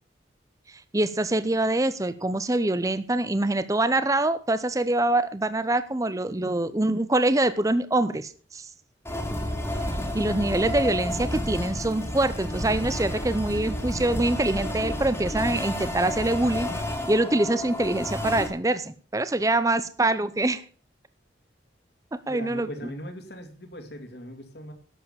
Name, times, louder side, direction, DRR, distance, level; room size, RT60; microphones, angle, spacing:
voice 1, 0.7-8.7 10.1-16.7 17.1-20.6 22.3-22.7, right 2 dB, 15° right, 13 dB, 0.6 m, -25 dB
sound 1, 9.0-18.5, left 1 dB, 15° left, 2.2 m, -30 dB
voice 2, 22.3-24.7, equal, 60° left, 7 dB, 2.4 m, -39 dB
12.0 x 7.7 x 7.1 m, 0.42 s
head